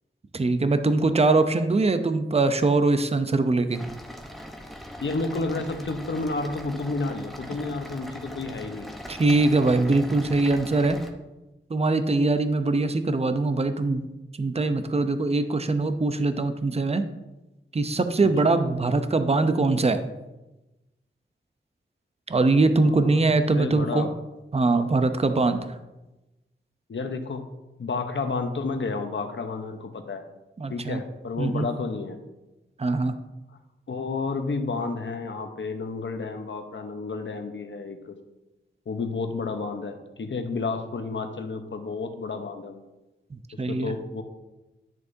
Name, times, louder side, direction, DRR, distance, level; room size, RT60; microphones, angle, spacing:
voice 1, 0.3-3.8 9.1-11.0 11.7-14.1 14.4-17.0 17.7-20.0 22.3-24.1 24.5-25.7 30.6-31.0 31.4-31.7 32.8-33.2 43.6-44.0, right 3 dB, 30° right, 9 dB, 0.6 m, -22 dB
sound 1, 3.7-11.1, equal, ahead, 0.9 m, -40 dB
voice 2, 5.0-8.9 18.2-18.3 22.8-23.2 23.5-24.1 26.9-27.5 27.8-30.2 30.7-32.2 33.9-38.2 38.9-42.8 43.7-44.2, left 3 dB, 70° left, 6 dB, 0.9 m, -31 dB
10.5 x 6.5 x 2.7 m, 1.0 s
wide cardioid pair, 70°, 20 cm